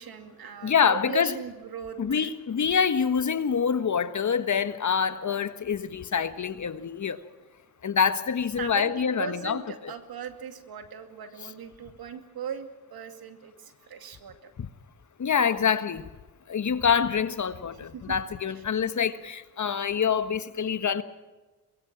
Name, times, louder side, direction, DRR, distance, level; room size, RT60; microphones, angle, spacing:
voice 1, 0.0-2.3 8.6-14.5 17.9-18.1 18.5-18.6, right 7 dB, 65° right, 8 dB, 2.5 m, -39 dB
voice 2, 0.6-1.3 2.0-7.2 7.8-9.6 14.6-14.7 15.2-16.0 16.5-21.0, left 7 dB, 45° left, 12 dB, 1.5 m, -26 dB
23.5 x 22.0 x 6.1 m, 1.2 s
supercardioid pair, 55°, 39 cm